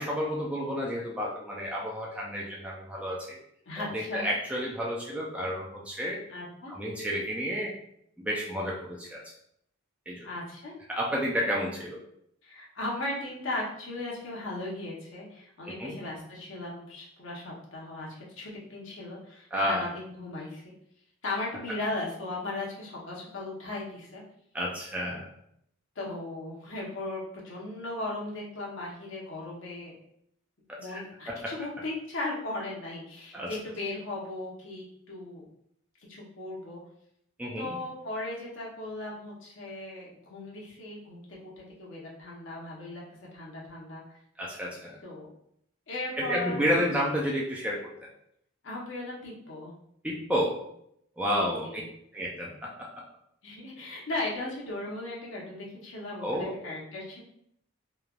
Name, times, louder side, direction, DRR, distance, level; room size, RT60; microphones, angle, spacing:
voice 1, 0.0-3.4 3.8-6.2 6.7-7.7 8.2-9.2 10.1-10.3 10.9-12.0 15.6-16.0 19.5-19.8 24.5-25.3 30.7-31.0 31.3-31.5 33.3-33.5 37.4-37.8 44.4-45.0 46.2-48.1 50.0-50.6 51.2-51.8 52.1-52.7 56.2-56.7, equal, 5° right, -4 dB, 0.3 m, -31 dB
voice 2, 3.7-4.3 6.3-6.7 10.2-10.7 12.4-20.7 21.2-24.2 26.0-29.9 30.8-35.5 36.1-36.8 37.6-43.0 43.3-44.0 45.0-45.3 45.9-46.8 48.6-49.7 51.3-51.8 53.4-57.2, left 2 dB, 60° left, -4 dB, 0.8 m, -37 dB
3.1 x 2.2 x 2.3 m, 0.72 s
head